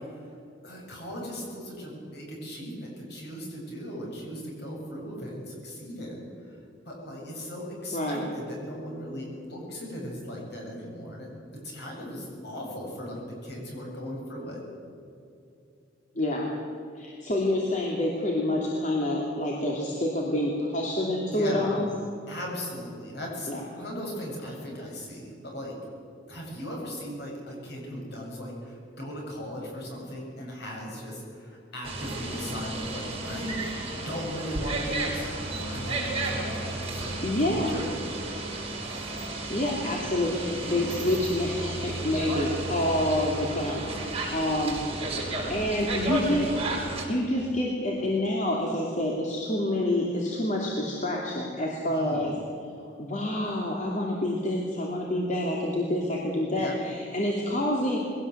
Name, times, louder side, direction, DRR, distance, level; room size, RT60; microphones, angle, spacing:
voice 1, 0.6-6.6 6.8-11.3 11.6-14.6 21.3-21.8 22.3-25.8 26.3-33.8 34.1-37.9 38.8-39.1 40.6-41.0 51.9-52.3 56.6-56.7, equal, 60° left, -1 dB, 7.3 m, -38 dB
voice 2, 16.1-16.5 17.0-21.9 23.5-23.6 37.2-37.7 39.5-43.8 44.3-44.8 45.5-46.5 47.1-52.3 53.0-58.0, left 1 dB, 40° left, -2 dB, 2.7 m, -27 dB
sound 1, 31.8-47.1, right 2 dB, 30° right, 6.0 m, -33 dB
22.0 x 17.0 x 8.0 m, 2.6 s
head